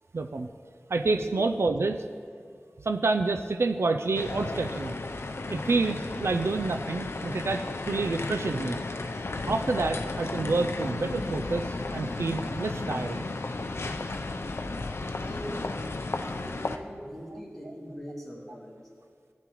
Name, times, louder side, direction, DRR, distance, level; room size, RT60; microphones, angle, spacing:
voice 1, 0.1-0.5 0.9-2.0 2.8-4.9 5.5-8.8 9.5-13.2, right 3 dB, 75° right, 7 dB, 0.4 m, -28 dB
sound 1, 4.1-16.8, left 3 dB, 70° left, 0.5 m, -34 dB
voice 2, 15.2-15.8 16.2-18.9, equal, ahead, -5 dB, 2.7 m, -42 dB
14.5 x 9.8 x 3.0 m, 2.1 s
wide cardioid pair, 60°, 4 cm